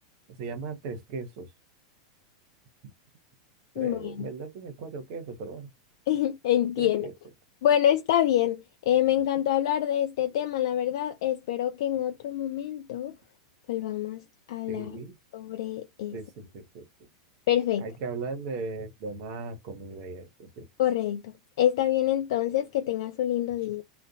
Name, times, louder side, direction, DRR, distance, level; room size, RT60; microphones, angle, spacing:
voice 1, 0.4-1.5 3.7-5.7 6.8-7.1 14.7-15.1 16.1-16.9 17.8-20.7, right 4 dB, 50° right, 0.8 m, -37 dB
voice 2, 3.8-4.3 6.1-7.1 7.6-13.1 13.7-14.2 14.5-14.9 15.3-16.2 17.5-17.9 20.8-23.8, left 11 dB, 55° left, 0.3 m, -26 dB
2.4 x 2.1 x 2.6 m
figure-of-eight pair, 90°, 3 cm